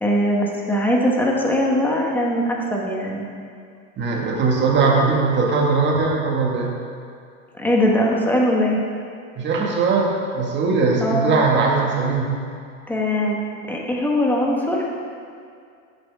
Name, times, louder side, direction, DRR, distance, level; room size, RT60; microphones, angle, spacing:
voice 1, 0.0-3.3 7.5-8.8 11.0-11.3 12.9-14.8, equal, 5° left, -2 dB, 1.5 m, -21 dB
voice 2, 4.0-6.8 9.4-12.3, right 4 dB, 30° right, -2 dB, 2.1 m, -20 dB
16.5 x 7.6 x 3.7 m, 2.3 s
supercardioid pair, 135°, 38 cm